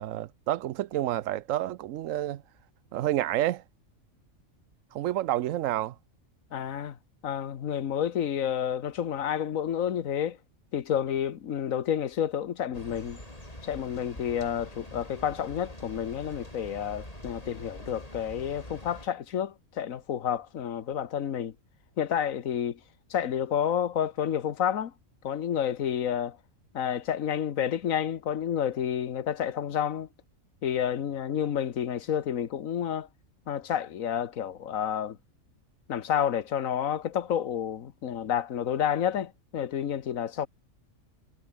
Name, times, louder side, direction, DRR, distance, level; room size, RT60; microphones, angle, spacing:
voice 1, 0.0-2.4 2.9-3.6 4.9-6.0, right 13 dB, 80° right, 1.0 m, -29 dB
voice 2, 6.5-7.0 7.2-10.4 10.7-13.2 13.6-21.5 22.0-22.8 23.1-24.9 25.2-26.4 26.7-30.1 30.6-33.1 33.5-35.2 35.9-40.5, left 9 dB, 85° left, 1.5 m, -30 dB
sound 1, 12.7-19.1, left 1 dB, 25° left, 6.8 m, -45 dB
omnidirectional pair, 1.4 m